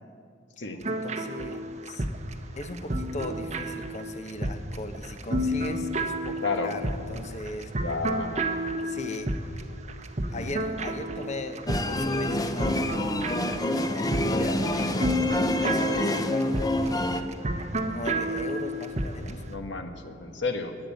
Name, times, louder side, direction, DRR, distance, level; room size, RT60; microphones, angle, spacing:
sound 1, 0.8-19.4, right 1 dB, 40° right, 1.0 m, -31 dB
voice 1, 0.9-2.1 2.6-6.3 6.6-7.7 8.8-9.3 10.3-17.0 17.9-19.4, left 1 dB, 40° left, 8 dB, 1.0 m, -38 dB
voice 2, 5.4-5.7 6.4-6.7 7.8-8.4 10.3-10.6 19.4-20.8, left 3 dB, 70° left, 5 dB, 1.6 m, -32 dB
sound 2, 11.7-17.2, left 1 dB, 20° left, 0.8 m, -27 dB
20.0 x 9.3 x 7.1 m, 2.3 s
head